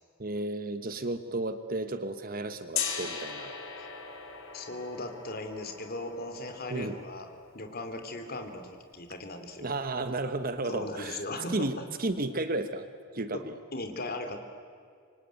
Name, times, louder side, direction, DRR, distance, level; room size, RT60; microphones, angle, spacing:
voice 1, 0.2-3.5 6.7-7.0 9.6-11.2 11.5-12.9 13.1-13.6, right 2 dB, 40° right, 10 dB, 1.1 m, -33 dB
Gong, 2.7-8.6, left 6 dB, 70° left, 3.7 m, -39 dB
voice 2, 4.5-7.3 7.5-9.7 10.7-11.9 13.7-14.4, left 2 dB, 45° left, 6 dB, 2.8 m, -38 dB
26.0 x 24.0 x 9.3 m, 2.2 s
head